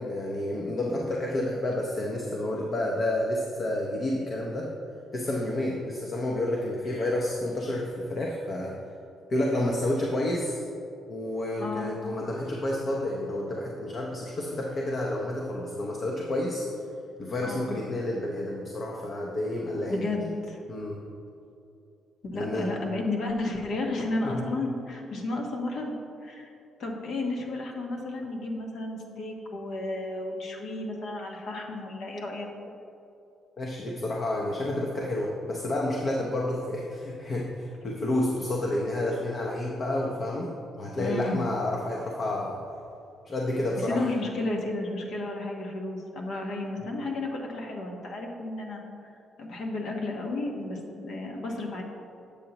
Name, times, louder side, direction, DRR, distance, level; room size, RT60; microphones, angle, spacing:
voice 1, 0.0-4.7 5.1-8.8 9.3-10.6 11.1-16.7 17.2-20.1 20.7-21.0 22.3-22.7 24.2-24.4 33.6-42.6 43.3-44.0, left 1 dB, 45° left, -1 dB, 0.8 m, -30 dB
voice 2, 11.6-11.9 17.4-17.7 19.9-20.6 22.2-26.0 26.2-26.5 26.8-32.5 41.0-41.5 43.8-48.8 49.4-51.8, left 2 dB, 70° left, 0 dB, 1.2 m, -32 dB
8.2 x 6.7 x 2.9 m, 2.7 s
cardioid pair, 90°, 0 cm